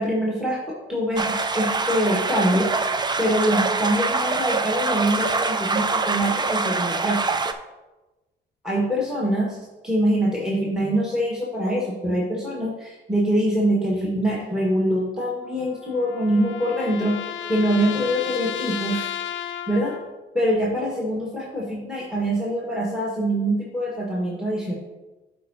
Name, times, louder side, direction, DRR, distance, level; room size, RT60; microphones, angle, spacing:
voice 1, 0.0-2.7 3.2-7.2 8.6-9.6 9.8-19.1 19.7-20.0 20.3-24.7, equal, 5° right, -4 dB, 1.5 m, -24 dB
sound 1, 1.2-7.5, right 4 dB, 20° right, 0.4 m, -24 dB
sound 2, 15.4-20.2, left 10 dB, 70° left, 0.4 m, -33 dB
11.5 x 4.5 x 2.8 m, 1.1 s
cardioid pair, 90°, 20 cm